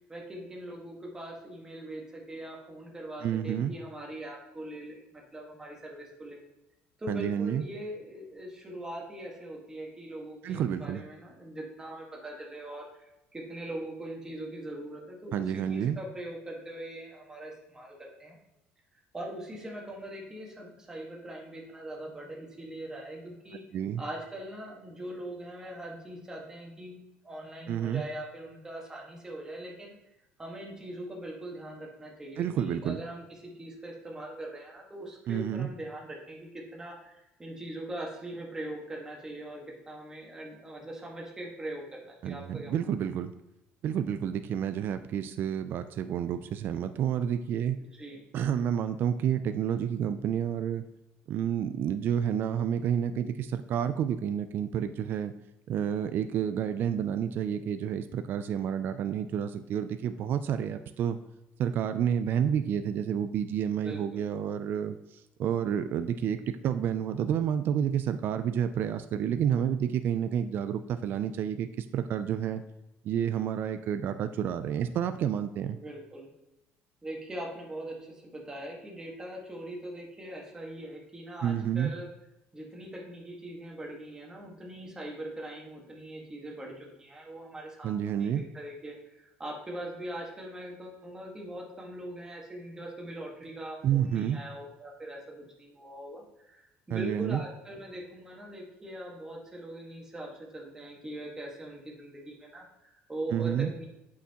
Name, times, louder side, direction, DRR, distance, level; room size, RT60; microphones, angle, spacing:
voice 1, 0.1-6.4 7.0-18.4 19.1-23.6 24.0-30.0 30.4-42.7 47.8-48.2 63.7-64.3 75.7-76.3 77.0-82.1 82.5-89.0 89.4-103.9, right 1 dB, 15° right, -2 dB, 1.5 m, -41 dB
voice 2, 3.2-3.7 7.1-7.6 10.4-11.0 15.3-16.0 23.7-24.0 27.7-28.0 32.4-33.0 35.3-35.7 42.2-43.3 43.8-47.8 48.3-50.9 51.3-55.3 55.7-61.2 61.6-72.6 73.0-75.8 81.4-81.9 87.8-88.4 93.8-94.4 96.9-97.4 103.3-103.7, right 9 dB, 50° right, 10 dB, 0.3 m, -30 dB
8.4 x 5.7 x 2.9 m, 0.92 s
cardioid pair, 140°, 5 cm